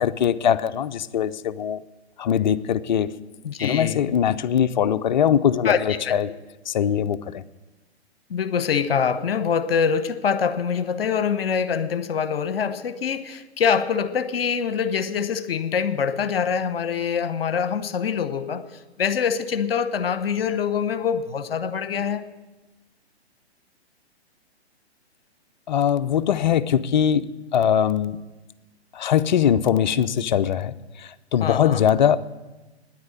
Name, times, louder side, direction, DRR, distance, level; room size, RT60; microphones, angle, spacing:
voice 1, 0.0-1.8 2.2-3.1 3.6-6.3 6.7-7.4 25.7-28.2 28.9-32.2, left 9 dB, 45° left, 13 dB, 0.5 m, -21 dB
voice 2, 3.4-4.0 5.6-6.2 8.3-18.6 19.0-22.2 31.4-31.9, left 7 dB, 60° left, 12 dB, 0.9 m, -24 dB
9.8 x 9.6 x 8.3 m, 1.1 s
figure-of-eight pair, 125°, 33 cm